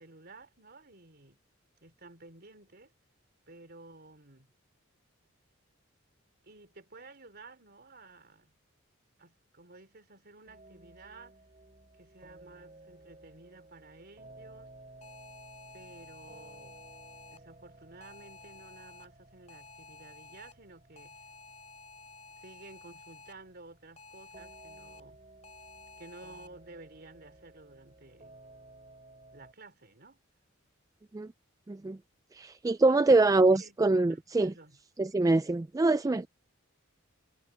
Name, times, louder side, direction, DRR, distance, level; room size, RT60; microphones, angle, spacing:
voice 1, 0.0-1.4 1.8-2.9 3.5-4.5 6.4-8.5 9.2-11.4 11.9-14.8 15.7-16.8 17.3-21.2 22.4-25.2 26.0-28.4 29.3-30.2 32.8-33.8 34.1-34.8, right 3 dB, 50° right, 3.9 m, -53 dB
sound 1, 10.5-29.5, right 2 dB, 30° right, 4.1 m, -56 dB
sound 2, 15.0-17.4 18.0-19.1 19.5-20.5 21.0-23.3 24.0-25.0 25.4-26.5, left 4 dB, 30° left, 6.2 m, -52 dB
voice 2, 31.7-32.0 32.3-34.5 35.0-36.3, right 2 dB, 15° right, 0.3 m, -24 dB
head